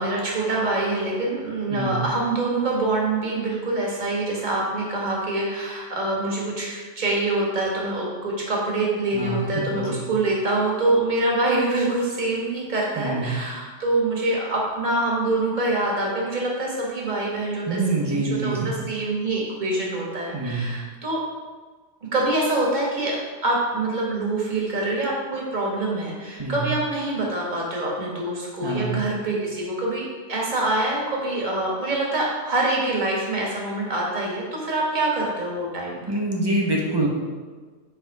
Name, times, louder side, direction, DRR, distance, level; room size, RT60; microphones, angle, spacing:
voice 1, 0.0-21.2 22.1-36.0, right 2 dB, 35° right, -3 dB, 1.4 m, -25 dB
voice 2, 1.7-2.0 9.1-10.1 13.0-13.3 17.7-18.7 20.3-20.7 26.4-26.7 28.6-29.0 36.1-37.1, right 2 dB, 20° right, -2 dB, 0.8 m, -26 dB
7.1 x 3.4 x 4.6 m, 1.4 s
omnidirectional pair, 1.3 m